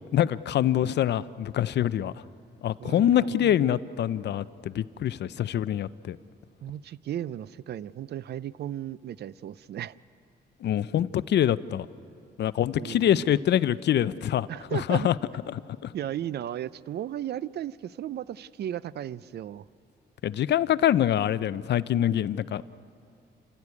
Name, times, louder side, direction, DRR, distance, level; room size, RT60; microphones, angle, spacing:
voice 1, 0.1-2.1 2.6-6.2 10.6-11.9 12.4-15.1 15.8-15.9 20.2-22.6, left 11 dB, 70° left, 16 dB, 0.6 m, -25 dB
voice 2, 2.8-3.8 6.6-9.9 12.8-13.3 14.5-15.1 15.9-19.7, right 11 dB, 65° right, 19 dB, 0.5 m, -35 dB
29.5 x 13.5 x 9.6 m, 2.5 s
cardioid pair, 105°, 18 cm